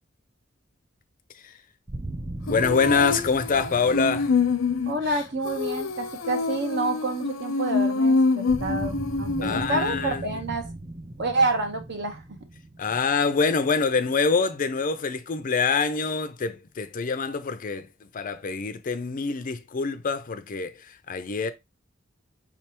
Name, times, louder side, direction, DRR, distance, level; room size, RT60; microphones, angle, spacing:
sound 1, 1.9-6.8 8.5-14.1, right 1 dB, 20° right, 0.5 m, -39 dB
Female singing, 2.5-10.1, left 4 dB, 80° left, 0.7 m, -26 dB
voice 1, 2.5-4.4 9.4-10.4 12.8-17.9 18.1-21.5, left 5 dB, 45° left, 0.5 m, -25 dB
voice 2, 4.8-10.7 11.2-12.2, right 2 dB, 60° right, 1.1 m, -28 dB
5.1 x 3.3 x 2.9 m
head